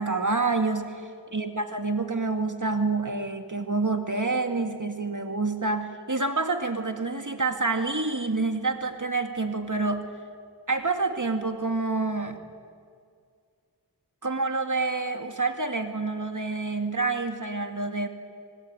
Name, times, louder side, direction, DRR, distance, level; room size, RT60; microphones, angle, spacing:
voice 1, 0.0-1.0 1.3-10.1 10.7-12.4 14.2-18.1, right 3 dB, 45° right, 6 dB, 2.2 m, -27 dB
26.5 x 22.0 x 9.6 m, 2.1 s
wide cardioid pair, 50°, 41 cm